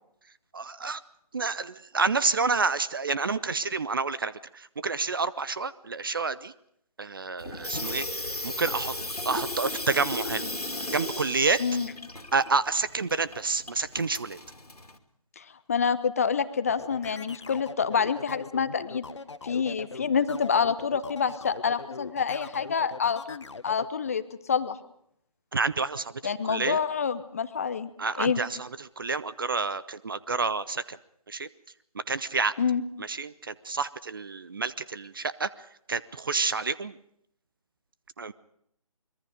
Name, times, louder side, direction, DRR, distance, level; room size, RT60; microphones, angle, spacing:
voice 1, 0.5-1.0 1.3-6.5 7.0-8.1 8.4-8.9 9.2-10.4 10.9-11.6 12.3-14.4 25.5-26.1 26.5-26.8 28.0-31.0 31.3-31.5 31.9-32.5 33.0-35.5 35.9-37.0 38.2-38.3, right 4 dB, 35° right, 16 dB, 0.7 m, -29 dB
Water tap faucet / Sink (filling or washing), 7.4-15.0, left 1 dB, 80° left, 2.8 m, -36 dB
voice 2, 11.6-11.9 15.4-19.0 19.4-24.2 24.5-24.8 26.2-27.9 28.2-28.4 32.6-32.8, left 6 dB, 25° left, 13 dB, 0.8 m, -27 dB
sound 1, 16.7-23.9, left 4 dB, 50° left, 1.3 m, -41 dB
25.0 x 22.5 x 5.2 m, 0.71 s
figure-of-eight pair, 155°, 19 cm